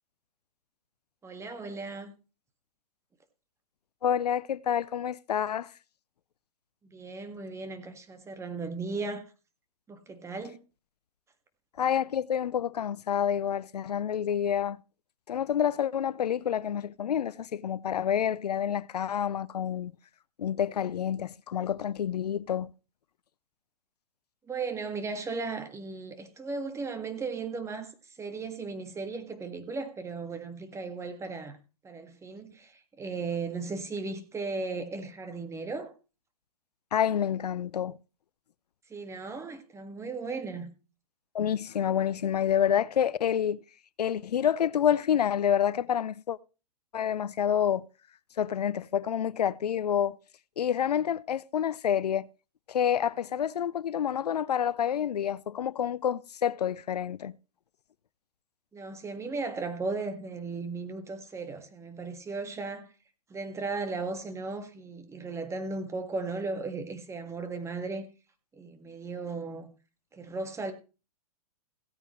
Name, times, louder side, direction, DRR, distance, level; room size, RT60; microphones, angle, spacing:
voice 1, 1.2-2.1 6.8-9.2 9.9-10.6 24.4-31.6 31.8-35.9 38.9-40.7 58.7-62.9 63.3-68.1 68.6-69.7 70.1-70.7, right 3 dB, 15° right, 1.7 m, -36 dB
voice 2, 4.0-5.7 11.8-14.8 15.3-19.9 20.4-22.7 36.9-38.0 41.3-43.6 44.0-46.4 46.9-47.9 48.4-50.2 50.6-52.3 52.7-57.3, left 9 dB, 80° left, 0.5 m, -28 dB
16.5 x 8.9 x 3.1 m
hypercardioid pair, 115°, 20 cm